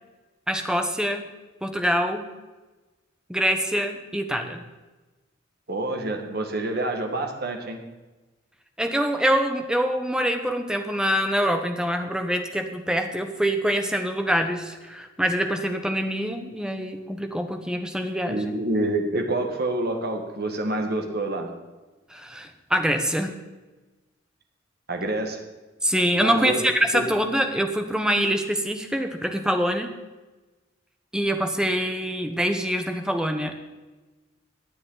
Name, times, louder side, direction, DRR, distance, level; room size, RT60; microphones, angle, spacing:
voice 1, 0.5-1.3 1.6-2.3 3.3-4.6 8.8-18.5 22.1-23.4 25.8-29.9 31.1-33.6, equal, 5° right, 6 dB, 1.0 m, -25 dB
voice 2, 5.7-7.8 18.3-21.5 24.9-25.4 26.2-26.6 26.9-27.1, right 2 dB, 50° right, 3 dB, 1.7 m, -27 dB
17.5 x 9.7 x 4.0 m, 1.2 s
head